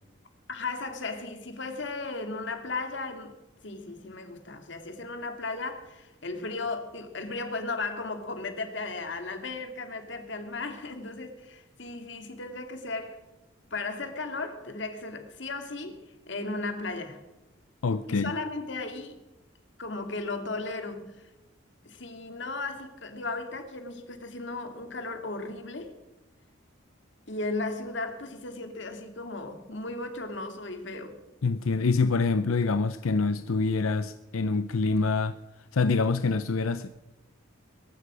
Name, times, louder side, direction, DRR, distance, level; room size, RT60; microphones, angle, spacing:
voice 1, 0.5-3.4 3.6-13.2 13.7-16.0 16.3-17.2 18.1-19.2 19.8-21.3 21.8-26.0 27.3-31.2, left 3 dB, 60° left, 2.2 m, -35 dB
voice 2, 17.8-18.4 31.4-35.4 35.7-36.9, left 4 dB, 90° left, 0.6 m, -26 dB
22.0 x 11.5 x 5.0 m
head